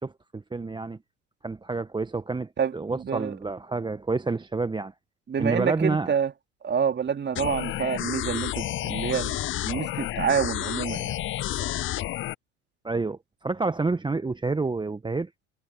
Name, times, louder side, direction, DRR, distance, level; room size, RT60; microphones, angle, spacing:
voice 1, 0.0-1.0 1.4-4.9 5.4-6.2 12.8-15.3, right 3 dB, 10° right, 1.2 m, -29 dB
voice 2, 2.6-3.4 5.3-6.3 6.6-9.4 9.6-11.2, right 7 dB, 30° right, 2.9 m, -27 dB
sound 1, 7.3-12.3, left 14 dB, 35° left, 0.6 m, -30 dB
hypercardioid pair, 70°, 37 cm